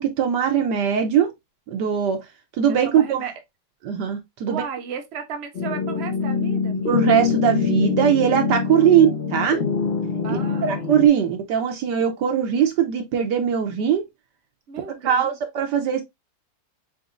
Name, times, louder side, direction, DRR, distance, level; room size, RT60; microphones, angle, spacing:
voice 1, 0.0-1.3 1.7-2.2 2.6-3.2 3.8-4.6 6.9-9.6 10.3-14.0 15.0-16.0, right 8 dB, 70° right, 1.2 m, -20 dB
voice 2, 2.7-3.3 4.5-7.1 8.7-9.3 10.2-11.2 14.7-15.4, right 6 dB, 85° right, 0.5 m, -35 dB
sound 1, 5.5-11.1, left 5 dB, 50° left, 0.7 m, -24 dB
4.2 x 4.0 x 2.4 m
omnidirectional pair, 2.0 m